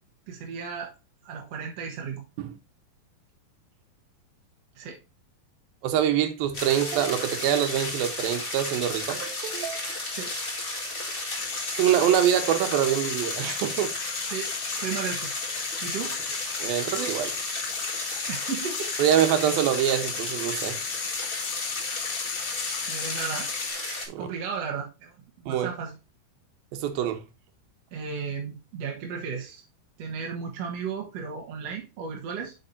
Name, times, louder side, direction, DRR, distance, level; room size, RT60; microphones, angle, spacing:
voice 1, 0.3-0.9 1.2-2.2 4.8-5.0 10.1-10.3 14.3-14.5 14.8-15.4 15.8-16.2 18.3-18.9 22.9-23.5 24.2-26.0 27.9-29.6 30.0-32.5, right 6 dB, 55° right, 2.1 m, -34 dB
voice 2, 5.8-9.9 11.7-13.9 16.6-17.3 19.0-20.8 24.1-24.3 25.5-25.7 26.7-27.2, right 10 dB, 90° right, 2.8 m, -25 dB
sound 1, 6.5-24.0, left 2 dB, 30° left, 1.1 m, -33 dB
sound 2, 11.3-23.7, left 12 dB, 80° left, 2.4 m, -37 dB
8.3 x 6.5 x 2.7 m
omnidirectional pair, 4.1 m